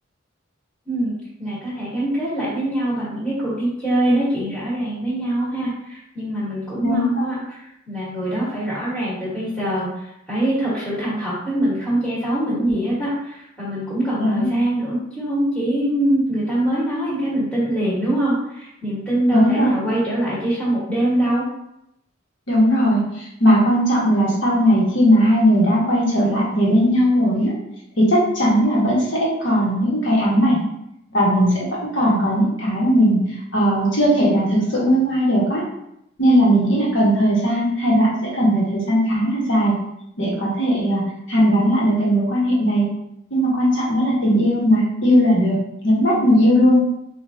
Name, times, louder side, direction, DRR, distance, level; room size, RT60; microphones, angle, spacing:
voice 1, 1.4-7.6 7.9-21.4, right 1 dB, 5° left, -11 dB, 1.3 m, -23 dB
voice 2, 6.8-7.2 14.2-14.5 19.3-19.7 22.5-27.5 28.0-30.6 31.1-31.7 31.9-33.2 33.5-35.6 36.2-39.8 40.2-42.9 43.3-46.9, equal, 65° left, -5 dB, 1.2 m, -18 dB
4.5 x 2.5 x 2.7 m, 0.81 s
head